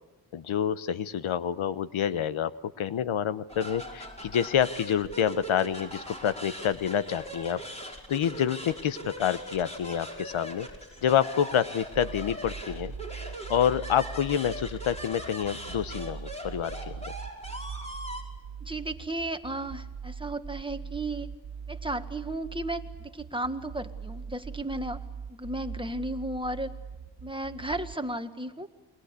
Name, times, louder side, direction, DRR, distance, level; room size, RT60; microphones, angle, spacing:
voice 1, 0.3-7.6 8.1-10.7 11.0-12.9 13.5-17.0, left 9 dB, 80° left, 14 dB, 1.1 m, -28 dB
sound 1, 3.5-18.2, equal, 15° left, 5.6 m, -41 dB
sound 2, 11.9-27.9, right 6 dB, 55° right, 1.5 m, -41 dB
voice 2, 18.6-21.3 21.7-25.0 25.3-26.7 27.2-28.7, right 1 dB, 10° right, 8 dB, 1.7 m, -34 dB
29.0 x 22.0 x 8.3 m, 1.1 s
cardioid pair, 80°, 47 cm